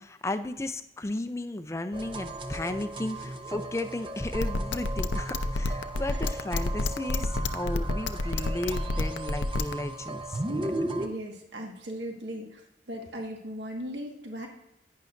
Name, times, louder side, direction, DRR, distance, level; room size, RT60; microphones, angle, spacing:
voice 1, 0.0-10.7, left 1 dB, 15° left, 10 dB, 0.4 m, -34 dB
sound 1, 1.9-11.1, right 2 dB, 30° right, 0.6 m, -36 dB
sound 2, 4.3-9.7, left 2 dB, 85° left, 0.6 m, -28 dB
voice 2, 11.0-12.6 12.9-14.5, equal, 75° right, 2 dB, 1.6 m, -37 dB
11.0 x 9.5 x 2.6 m, 0.86 s
head